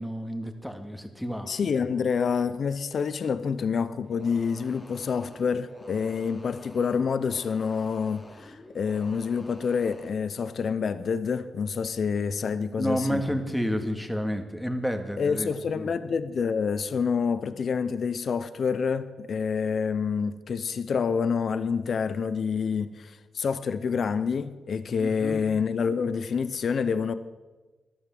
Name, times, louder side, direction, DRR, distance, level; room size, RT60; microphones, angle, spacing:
voice 1, 0.0-1.5 12.8-15.9 25.0-25.4, equal, ahead, 2.1 m, -30 dB
voice 2, 1.4-13.4 15.2-27.1, left 6 dB, 60° left, 0.7 m, -27 dB
sound 1, 4.0-10.2, left 1 dB, 25° left, 3.1 m, -49 dB
14.0 x 11.5 x 7.6 m
cardioid pair, 60°, 0 cm